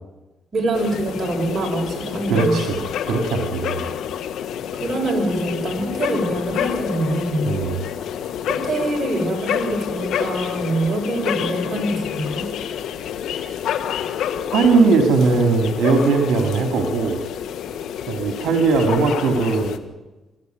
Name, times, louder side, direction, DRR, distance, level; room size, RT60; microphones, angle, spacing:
voice 1, 0.5-2.7 4.7-7.5 8.5-12.5, right 1 dB, 40° right, 2 dB, 7.5 m, -24 dB
sound 1, 0.7-19.8, left 9 dB, 80° left, 1.6 m, -28 dB
voice 2, 2.3-2.8 3.1-3.9 7.5-7.8 14.5-17.2 18.1-19.8, right 4 dB, 75° right, 4 dB, 2.9 m, -19 dB
23.5 x 14.5 x 9.5 m, 1.1 s
cardioid pair, 90°, 0 cm